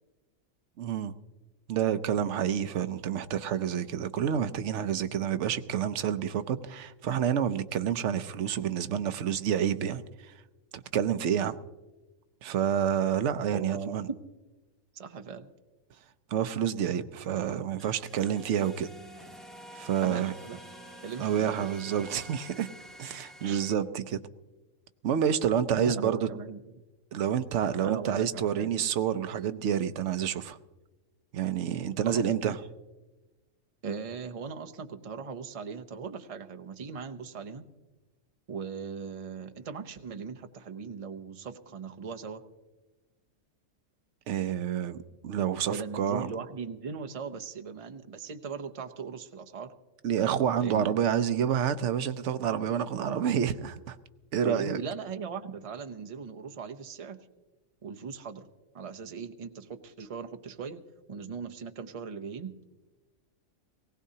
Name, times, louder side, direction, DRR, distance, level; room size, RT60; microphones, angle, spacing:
voice 1, 0.8-1.1 1.7-10.0 10.7-11.6 12.4-14.1 16.3-18.9 19.7-20.3 21.2-22.7 23.0-24.2 25.0-26.3 27.1-30.6 31.3-32.6 44.3-45.0 45.2-46.3 50.0-54.0 54.3-54.8, right 9 dB, 70° right, 12 dB, 0.9 m, -28 dB
voice 2, 13.5-14.0 15.0-15.5 20.0-20.6 21.0-21.7 23.4-23.6 25.7-26.6 27.8-28.7 32.1-32.5 33.8-37.6 38.5-42.4 45.7-49.7 50.6-50.9 54.4-57.2 57.8-58.5 58.7-60.8 61.1-62.5, right 5 dB, 35° right, 6 dB, 0.6 m, -38 dB
sound 1, 17.8-23.7, right 1 dB, ahead, 0.8 m, -48 dB
19.0 x 17.5 x 2.8 m, 1.1 s
omnidirectional pair, 1.3 m